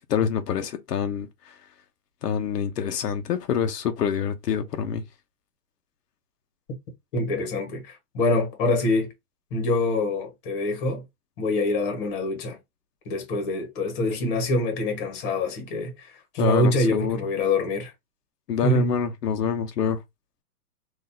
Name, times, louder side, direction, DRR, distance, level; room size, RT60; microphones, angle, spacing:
voice 1, 0.1-1.6 2.2-5.0 16.4-17.2 18.5-20.0, left 7 dB, 85° left, 0.9 m, -26 dB
voice 2, 7.1-9.1 9.5-11.0 11.4-12.6 13.0-17.9 18.6-18.9, left 2 dB, 35° left, 1.4 m, -25 dB
3.9 x 2.7 x 2.7 m
hypercardioid pair, 155°, 46 cm